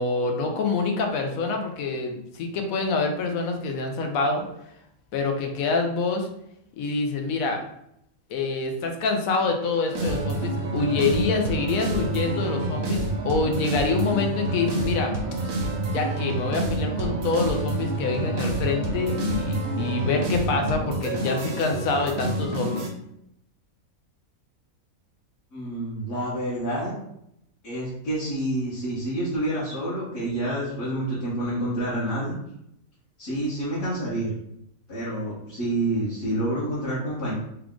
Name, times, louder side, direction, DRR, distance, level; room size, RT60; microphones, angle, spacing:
voice 1, 0.0-4.4 5.1-6.3 6.8-7.6 8.3-15.1 15.9-22.8, left 4 dB, 75° left, 3 dB, 1.1 m, -26 dB
sound 1, 9.4-20.5, right 6 dB, 65° right, 1.1 m, -39 dB
sound 2, 9.9-22.9, right 2 dB, 85° right, 1.2 m, -28 dB
voice 2, 25.5-26.9 27.6-32.3 33.2-34.3 34.9-37.3, right 1 dB, 55° left, -9 dB, 1.4 m, -28 dB
3.5 x 2.4 x 3.6 m, 0.77 s
omnidirectional pair, 1.5 m